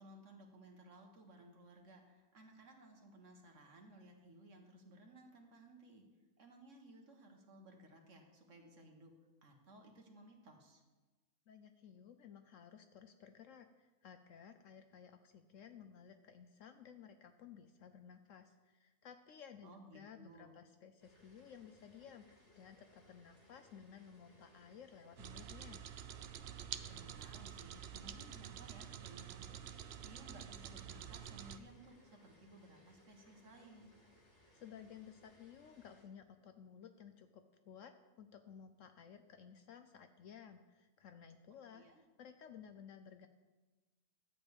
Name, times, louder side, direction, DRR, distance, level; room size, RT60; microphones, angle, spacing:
voice 1, 0.0-6.0 6.4-9.1 9.4-10.8 19.6-20.6 26.9-29.8 30.0-33.9 41.6-42.0, right 1 dB, 55° right, 3 dB, 1.7 m, -59 dB
voice 2, 11.5-22.2 22.6-25.8 34.5-43.3, left 7 dB, 65° left, 8 dB, 0.9 m, -56 dB
sound 1, 21.0-36.0, left 1 dB, 45° left, 3.4 m, -67 dB
sound 2, 25.2-31.6, right 9 dB, 70° right, 0.6 m, -48 dB
11.5 x 5.2 x 8.1 m, 1.2 s
omnidirectional pair, 1.6 m